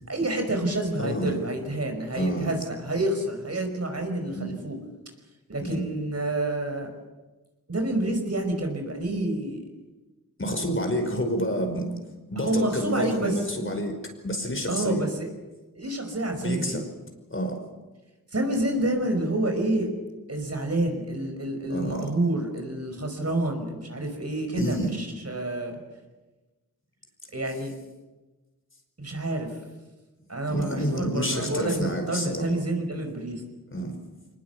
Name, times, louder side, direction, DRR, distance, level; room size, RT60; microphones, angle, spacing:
voice 1, 0.1-4.8 5.5-6.9 7.7-9.7 12.4-13.3 14.7-15.3 15.8-16.8 18.3-19.9 20.3-25.8 27.3-27.7 29.0-29.5 30.3-33.4, right 1 dB, 45° right, 5 dB, 5.5 m, -28 dB
voice 2, 1.0-1.3 2.2-2.5 4.3-4.6 5.6-5.9 10.4-11.9 12.3-15.0 16.4-16.9 17.3-17.6 21.7-22.1 24.6-24.9 30.5-32.5 33.7-34.0, equal, 35° left, 4 dB, 5.2 m, -29 dB
23.0 x 20.5 x 8.2 m, 1.2 s
cardioid pair, 50°, 35 cm